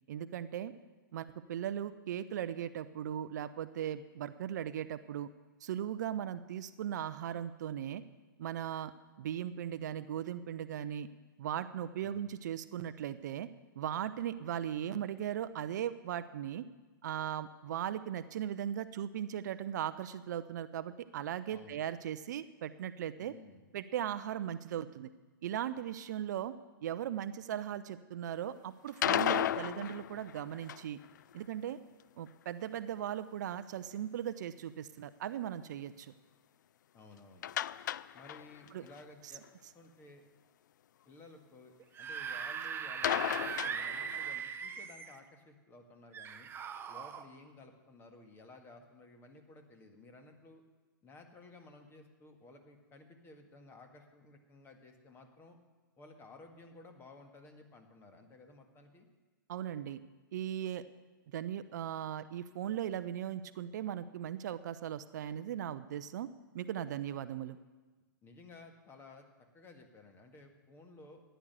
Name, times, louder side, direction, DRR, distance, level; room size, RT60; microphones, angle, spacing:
voice 1, 0.1-0.7 1.1-5.3 5.6-8.0 8.4-8.9 9.2-11.1 11.4-13.5 13.8-16.7 17.0-23.3 23.7-25.1 25.4-26.5 26.8-31.0 31.3-31.8 32.2-36.1 38.7-38.8 59.5-60.0 60.3-60.8 61.3-66.3 66.5-67.6, right 10 dB, 55° right, 13 dB, 0.6 m, -38 dB
voice 2, 21.5-21.8 23.2-23.7 36.9-37.5 38.1-39.4 39.7-40.2 41.1-41.7 42.0-46.5 46.9-50.6 51.0-55.6 56.0-59.1 68.2-69.2 69.5-71.2, left 2 dB, 20° left, 5 dB, 1.8 m, -55 dB
sound 1, 28.9-31.0 37.4-38.7 39.0-39.1 39.4-39.5 43.0-44.4, left 11 dB, 60° left, 0.4 m, -34 dB
Screaming / Screech, 41.8-45.2 46.1-47.2, right 7 dB, 20° right, 0.8 m, -40 dB
14.5 x 10.0 x 6.7 m, 1.3 s
figure-of-eight pair, 110°, 11 cm